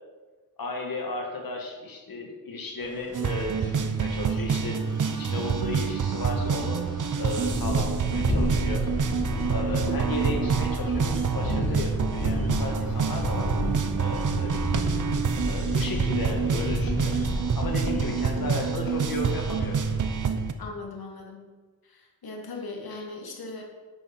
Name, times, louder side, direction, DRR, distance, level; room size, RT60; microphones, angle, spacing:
voice 1, 0.6-4.8 5.1-6.8 7.2-8.9 9.5-13.5 14.0-14.8 15.4-17.2 17.6-19.8 22.9-23.0, left 2 dB, 70° left, 1 dB, 2.3 m, -34 dB
sound 1, 2.8-20.1, left 1 dB, 45° left, 2.2 m, -32 dB
sound 2, 3.1-20.5, right 6 dB, 60° right, 0.8 m, -27 dB
voice 2, 17.9-18.6 20.6-21.5 21.8-23.6, left 3 dB, 90° left, 1 dB, 2.3 m, -39 dB
9.7 x 8.8 x 6.1 m, 1.3 s
wide cardioid pair, 130°, 35 cm